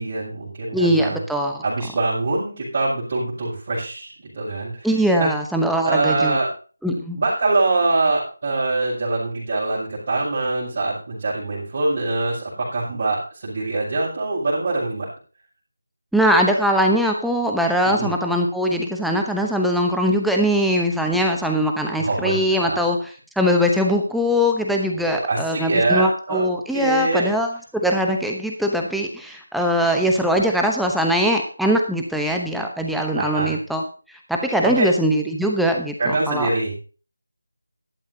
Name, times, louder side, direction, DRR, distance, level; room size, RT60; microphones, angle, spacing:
voice 1, 0.0-1.2 1.6-4.9 5.2-5.3 5.8-6.5 7.1-15.1 17.8-18.1 22.0-22.8 25.0-26.5 26.7-27.3 33.1-33.5 34.6-34.9 36.0-36.8, right 2 dB, 35° right, -9 dB, 6.4 m, -24 dB
voice 2, 0.7-1.6 4.8-6.4 6.8-7.2 16.1-23.0 23.4-33.8 34.1-36.5, equal, ahead, 1 dB, 0.9 m, -21 dB
15.5 x 12.0 x 2.8 m, 0.37 s
figure-of-eight pair, 160°, 0 cm